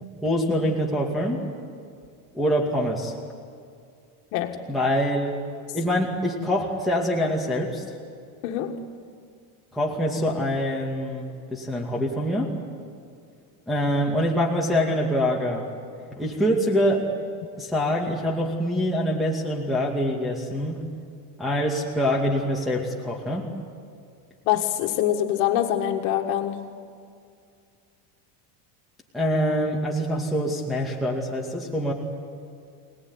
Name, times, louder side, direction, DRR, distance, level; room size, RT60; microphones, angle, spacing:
voice 1, 0.2-1.4 2.3-3.2 4.7-5.4 5.7-7.8 9.7-12.5 13.7-15.7 16.1-17.1 17.6-20.8 21.4-23.5 29.1-31.9, equal, ahead, -4 dB, 2.4 m, -25 dB
voice 2, 8.4-8.8 24.5-26.7, left 11 dB, 75° left, 4 dB, 1.8 m, -24 dB
26.5 x 19.0 x 9.7 m, 2.3 s
cardioid pair, 155°, 45 cm